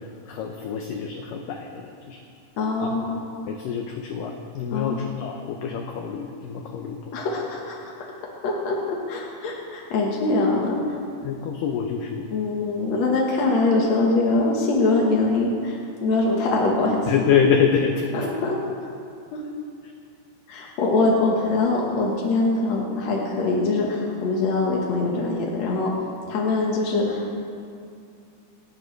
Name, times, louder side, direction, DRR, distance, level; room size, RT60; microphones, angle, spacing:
voice 1, 0.3-2.2 2.8-2.9 3.5-7.1 11.2-12.3 17.1-18.1, left 7 dB, 85° left, 3 dB, 1.9 m, -25 dB
voice 2, 2.6-3.2 4.7-5.0 7.1-7.9 8.4-10.8 12.3-17.1 18.1-18.6 19.3-19.4 20.5-25.9 26.3-27.4, left 3 dB, 65° left, -2 dB, 1.8 m, -23 dB
28.0 x 9.5 x 3.3 m, 2.3 s
omnidirectional pair, 4.9 m